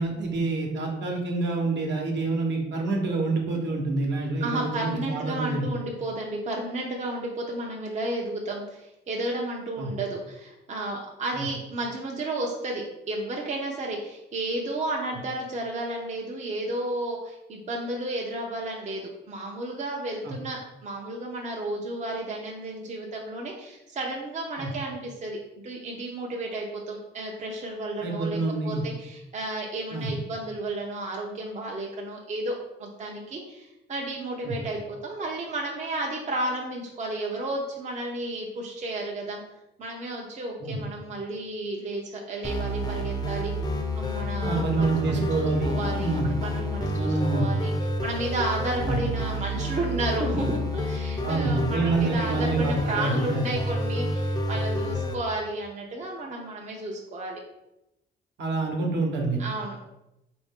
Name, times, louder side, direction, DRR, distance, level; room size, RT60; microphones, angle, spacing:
voice 1, 0.0-5.7 9.8-9.9 11.3-11.4 20.2-20.3 24.6-24.7 28.0-28.8 29.9-30.1 34.4-34.5 40.6-40.8 44.4-45.7 46.0-46.3 46.9-47.5 48.8-49.0 51.2-53.5 58.4-59.4, right 3 dB, 65° right, 1 dB, 1.0 m, -27 dB
voice 2, 4.4-25.4 25.6-32.5 32.8-39.4 39.8-43.5 43.9-47.7 48.0-57.4 59.4-59.8, right 2 dB, 35° right, -1 dB, 0.6 m, -32 dB
sound 1, 42.4-55.1, equal, 20° left, 0.6 m, -29 dB
3.9 x 2.6 x 3.6 m, 0.91 s
cardioid pair, 90°, 20 cm